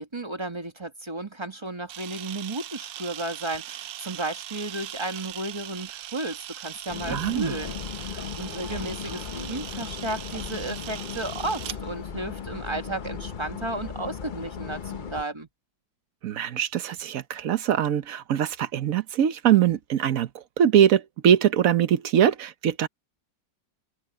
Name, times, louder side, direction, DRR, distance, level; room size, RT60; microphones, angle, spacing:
voice 1, 0.0-15.5, right 2 dB, 15° right, 1.4 m, -33 dB
Camera, 1.9-11.8, right 13 dB, 80° right, 1.4 m, -40 dB
sound 1, 6.9-15.2, left 7 dB, 70° left, 0.4 m, -37 dB
voice 2, 7.1-7.5 16.2-22.9, right 9 dB, 55° right, 1.1 m, -22 dB
omnidirectional pair, 2.0 m